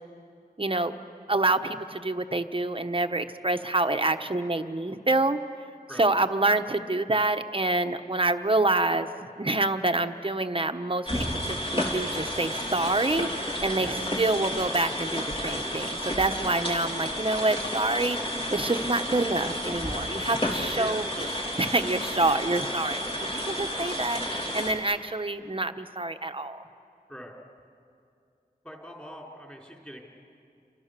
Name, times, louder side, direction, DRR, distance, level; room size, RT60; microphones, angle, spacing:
voice 1, 0.6-0.9 1.3-5.4 6.0-13.3 13.6-18.2 18.5-21.3 21.6-26.6, right 2 dB, 35° right, 8 dB, 1.1 m, -27 dB
sound 1, 11.1-24.7, equal, 35° left, 3.5 m, -31 dB
voice 2, 20.8-21.1 27.1-27.4 28.6-30.0, equal, 10° left, -1 dB, 4.7 m, -42 dB
29.5 x 25.5 x 6.9 m, 2.5 s
wide cardioid pair, 60°, 16 cm